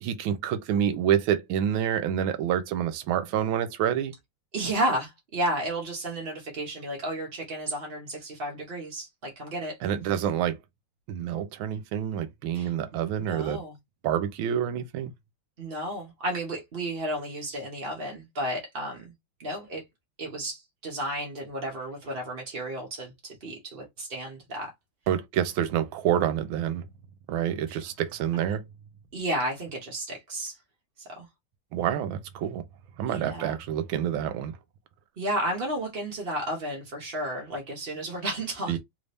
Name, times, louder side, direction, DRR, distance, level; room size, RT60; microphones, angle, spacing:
voice 1, 0.0-4.1 9.8-10.6 11.1-13.6 14.0-15.1 25.1-26.8 27.3-28.6 31.7-32.6 33.0-34.5 38.7-38.8, right 10 dB, 80° right, 1.4 m, -27 dB
voice 2, 4.5-9.8 12.5-12.7 13.2-13.8 15.6-19.1 19.4-19.8 20.2-24.7 27.7-27.8 29.1-30.6 31.0-31.3 33.1-33.6 35.2-38.8, right 1 dB, 50° right, 0.6 m, -32 dB
3.3 x 2.7 x 3.3 m
omnidirectional pair, 2.3 m